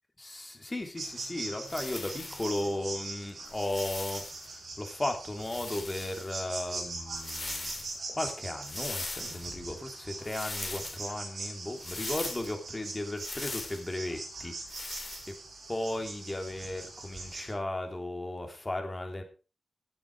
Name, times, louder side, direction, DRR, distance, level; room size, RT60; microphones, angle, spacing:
voice 1, 0.2-7.7 8.1-14.5 15.0-15.1 15.7-19.2, left 1 dB, 20° left, 4 dB, 3.1 m, -36 dB
sound 1, 1.0-17.5, right 3 dB, 65° right, 6.6 m, -42 dB
sound 2, 1.7-2.6 3.5-4.5 5.4-6.3 7.1-7.9 8.6-9.5 10.2-11.0 11.8-12.5 13.2-13.8 14.7-15.3, left 3 dB, 40° left, 3.0 m, -40 dB
16.0 x 9.0 x 4.7 m, 0.33 s
wide cardioid pair, 100°, 0 cm